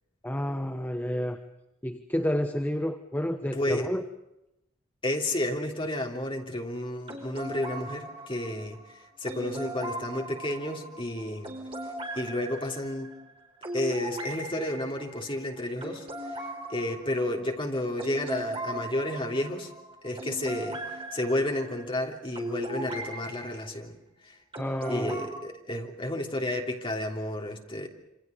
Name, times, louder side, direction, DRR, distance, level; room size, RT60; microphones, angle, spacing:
voice 1, 0.2-1.4 1.8-4.0 24.6-25.2, equal, 10° left, 6 dB, 1.1 m, -30 dB
voice 2, 3.5-3.9 5.0-11.5 12.1-13.1 13.7-16.4 16.7-19.7 20.0-20.8 21.1-24.0 24.2-24.3 24.9-27.9, left 1 dB, 25° left, 2 dB, 3.2 m, -31 dB
sound 1, 7.1-23.4 24.5-25.3, right 1 dB, 25° right, 4.4 m, -39 dB
27.5 x 26.5 x 5.3 m, 0.88 s
head